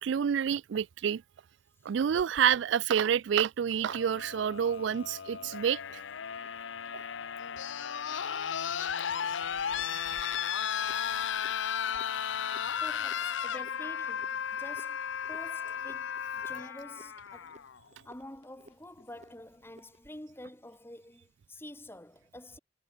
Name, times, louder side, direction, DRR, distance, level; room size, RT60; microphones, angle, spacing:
voice 1, 0.0-1.2 1.8-6.0 9.8-10.6 11.1-11.2, right 8 dB, 70° right, 0.3 m, -29 dB
sound 1, 2.2-20.2, right 1 dB, 40° right, 6.8 m, -61 dB
sound 2, 3.8-17.8 19.0-19.1, left 8 dB, 75° left, 0.6 m, -35 dB
voice 2, 12.8-17.7 18.0-22.6, left 1 dB, 10° left, 2.1 m, -48 dB
head